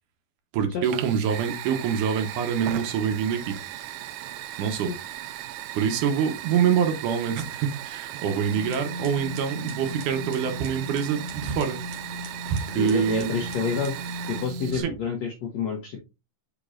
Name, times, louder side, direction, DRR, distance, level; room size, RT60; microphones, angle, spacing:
voice 1, 0.5-3.6 4.6-4.9 5.7-11.8 12.5-13.4 14.7-14.9, right 7 dB, 70° right, 6 dB, 2.1 m, -25 dB
Fire, 0.8-14.7, right 12 dB, 90° right, 2.6 m, -37 dB
sound 1, 8.5-14.8, equal, 50° right, 2.3 m, -37 dB
voice 2, 12.7-13.9 14.3-16.0, left 5 dB, 80° left, 2 dB, 1.5 m, -28 dB
7.2 x 5.2 x 2.5 m, 0.27 s
omnidirectional pair, 4.4 m